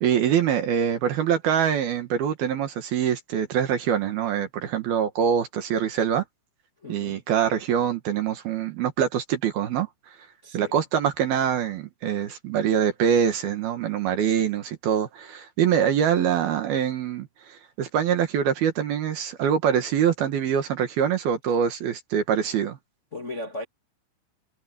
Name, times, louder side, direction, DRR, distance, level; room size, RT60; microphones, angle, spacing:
voice 1, 0.0-6.2 6.9-9.9 10.5-22.8, right 8 dB, 60° right, 3.0 m, -24 dB
voice 2, 6.8-7.2 10.4-10.8 23.1-23.6, left 1 dB, 45° left, 0.9 m, -36 dB
omnidirectional pair, 5.7 m